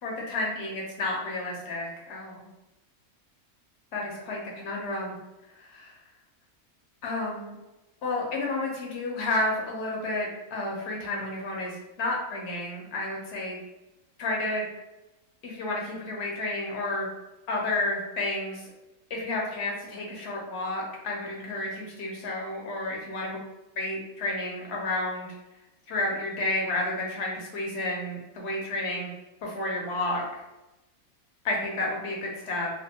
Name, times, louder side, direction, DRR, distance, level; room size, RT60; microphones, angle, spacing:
voice 1, 0.0-2.5 3.9-5.2 5.6-6.0 7.0-7.6 8.0-13.6 14.2-14.6 15.4-17.1 17.5-18.7 19.1-23.4 23.8-25.3 25.9-29.1 29.4-30.2 31.4-32.7, left 2 dB, 60° left, -2 dB, 0.8 m, -31 dB
2.5 x 2.4 x 2.7 m, 1.0 s
omnidirectional pair, 1.6 m